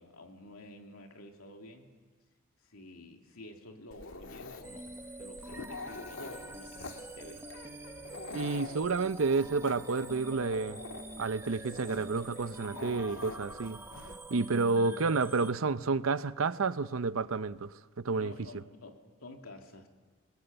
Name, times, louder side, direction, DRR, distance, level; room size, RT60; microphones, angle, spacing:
voice 1, 0.0-1.9 2.6-4.9 5.2-7.5 18.1-19.9, left 2 dB, 85° left, 2.7 m, -50 dB
Dog, 3.9-14.1, left 3 dB, 70° left, 1.9 m, -46 dB
sound 1, 4.6-15.5, right 2 dB, 10° right, 1.0 m, -46 dB
voice 2, 8.3-10.8 11.2-13.8 14.3-18.5, right 4 dB, 75° right, 0.7 m, -30 dB
28.5 x 21.0 x 7.9 m
head